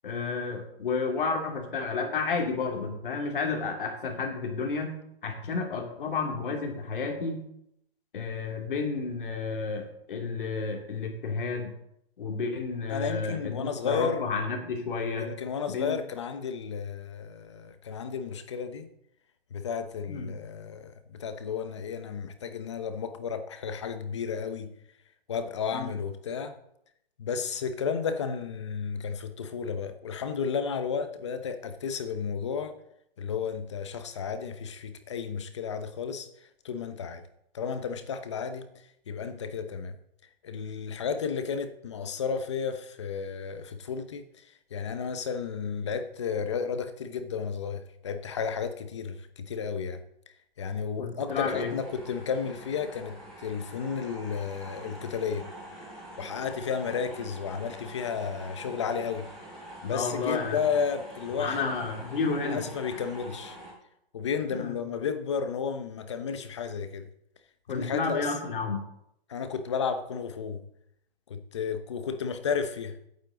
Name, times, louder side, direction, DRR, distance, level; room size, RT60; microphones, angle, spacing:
voice 1, 0.0-7.4 8.1-11.7 12.2-15.3 15.7-16.0 20.1-20.4 25.7-25.9 51.0-51.7 59.8-60.6 61.4-62.6 62.9-63.0 64.5-64.7 67.7-68.8, left 4 dB, 55° left, 2.7 m, -31 dB
voice 2, 12.9-14.3 15.2-18.9 19.5-24.8 25.3-26.5 27.2-32.8 33.2-36.3 36.6-37.2 37.5-38.7 39.1-40.0 40.4-50.0 50.6-55.5 56.2-59.3 59.8-61.7 62.4-63.6 64.1-67.1 67.7-68.3 69.3-70.7 71.3-73.0, left 6 dB, 30° left, 0.8 m, -33 dB
sound 1, 51.3-63.7, right 1 dB, ahead, 3.5 m, -45 dB
16.0 x 8.9 x 3.8 m
hypercardioid pair, 175°, 31 cm